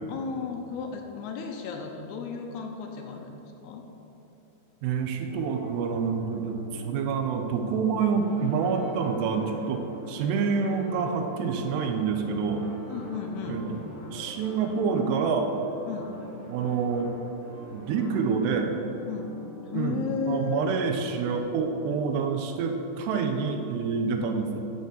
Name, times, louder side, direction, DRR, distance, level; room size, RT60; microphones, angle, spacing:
voice 1, 0.1-3.4 3.6-3.9 12.9-13.6 15.9-16.2 19.1-19.3 19.7-20.7, left 5 dB, 80° left, 3 dB, 2.6 m, -34 dB
voice 2, 4.8-12.7 13.5-13.8 14.1-15.6 16.5-17.1 17.7-18.8 19.7-24.6, right 5 dB, 80° right, 5 dB, 2.7 m, -27 dB
sound 1, 5.3-22.7, equal, 45° left, 2.6 m, -48 dB
sound 2, 8.1-18.2, right 1 dB, 55° right, 1.0 m, -46 dB
9.0 x 6.4 x 6.9 m, 3.0 s
omnidirectional pair, 4.9 m